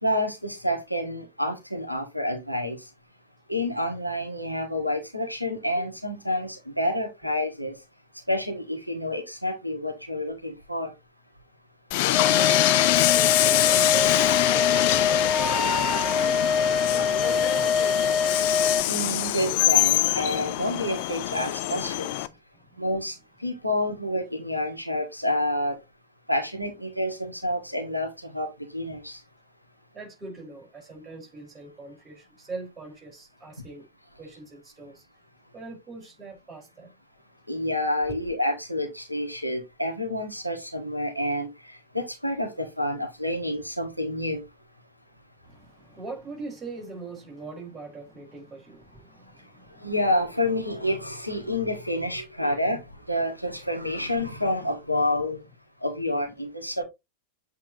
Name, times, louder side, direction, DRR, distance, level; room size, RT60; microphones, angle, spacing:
voice 1, 0.0-2.8 3.5-7.7 8.3-10.9 18.9-22.1 22.8-23.1 23.4-25.8 26.3-28.5 28.7-29.2 37.5-44.4 49.8-52.8 53.1-55.4 55.8-56.8, left 1 dB, 90° left, 1.7 m, -28 dB
Train, 11.9-22.3, left 16 dB, 50° left, 0.5 m, -24 dB
sound 1, 12.1-18.8, left 5 dB, ahead, 0.8 m, -24 dB
voice 2, 12.6-19.0 22.2-22.9 29.9-33.9 34.2-35.1 35.5-36.9 38.1-38.2 45.4-49.9, right 3 dB, 20° right, 4.9 m, -42 dB
8.1 x 4.6 x 2.9 m
figure-of-eight pair, 90°, 0 cm